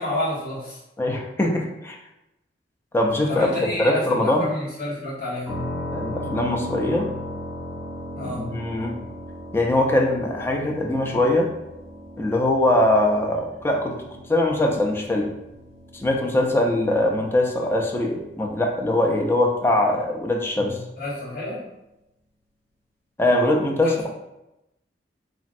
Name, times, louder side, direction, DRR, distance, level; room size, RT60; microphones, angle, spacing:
voice 1, 0.0-0.8 3.3-5.6 8.1-8.5 20.5-21.6 23.7-24.1, left 1 dB, 55° left, -9 dB, 1.3 m, -30 dB
voice 2, 1.0-2.0 2.9-4.4 5.9-7.1 8.2-9.0 9.5-11.5 12.2-14.0 14.3-15.3 15.9-20.8 23.2-24.1, left 1 dB, 15° left, 0 dB, 0.3 m, -22 dB
sound 1, 5.5-19.1, equal, 35° right, 1.0 m, -37 dB
3.0 x 2.5 x 2.5 m, 0.91 s
head